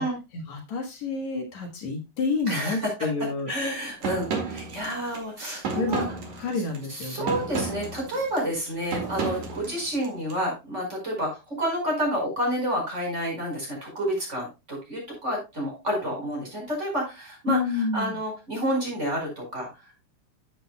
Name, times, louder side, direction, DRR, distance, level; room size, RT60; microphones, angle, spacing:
voice 1, 0.3-3.5 5.7-6.1 6.4-7.4 17.5-18.2, left 4 dB, 65° left, 3 dB, 2.8 m, -29 dB
voice 2, 2.5-2.9 3.5-6.0 6.9-19.7, equal, 20° right, -1 dB, 5.1 m, -29 dB
sound 1, 4.0-10.4, right 4 dB, 70° right, 3.3 m, -33 dB
12.0 x 7.7 x 2.3 m, 0.25 s
omnidirectional pair, 3.5 m